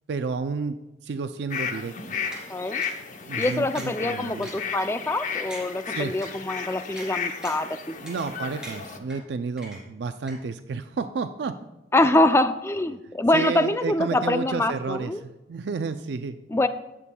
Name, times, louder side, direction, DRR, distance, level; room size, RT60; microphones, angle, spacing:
voice 1, 0.1-0.8 1.0-2.2 3.2-4.5 5.9-6.1 8.0-11.6 13.3-16.4, right 4 dB, 70° right, 10 dB, 0.4 m, -31 dB
sound 1, 1.5-9.0, left 6 dB, 45° left, 0.8 m, -34 dB
sound 2, 2.3-2.4 2.8-3.0 3.4-4.0 4.4-4.5 5.0-5.1 5.5-5.6 6.2-6.3 7.0-7.1 7.4-7.7 8.1-8.4 8.6-9.2 9.6-10.0 10.3-10.4, right 1 dB, 5° right, 2.9 m, -40 dB
voice 2, 2.5-2.8 3.4-8.0 11.9-15.2 16.5-16.7, left 1 dB, 15° left, 10 dB, 0.4 m, -24 dB
16.5 x 7.3 x 2.3 m, 1.0 s
head